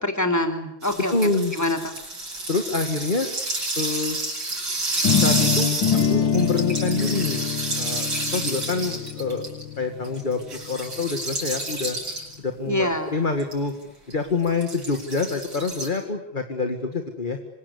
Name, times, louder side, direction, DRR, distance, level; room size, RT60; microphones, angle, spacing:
voice 1, 0.0-1.1 1.5-1.9 12.7-13.2, left 1 dB, 10° left, 5 dB, 3.0 m, -25 dB
sound 1, 0.8-9.6 10.0-12.3 13.4-13.6 14.1-15.9, right 2 dB, 65° right, 8.4 m, -29 dB
voice 2, 1.1-1.5 2.5-3.3 3.8-4.2 5.2-5.7 6.1-7.5 7.8-9.5 9.8-10.4 10.7-12.0 12.4-13.7 14.1-17.4, left 3 dB, 25° left, 5 dB, 2.0 m, -26 dB
sound 2, 5.0-11.0, left 8 dB, 70° left, 2.0 m, -25 dB
27.0 x 25.0 x 8.4 m, 0.80 s
omnidirectional pair, 2.3 m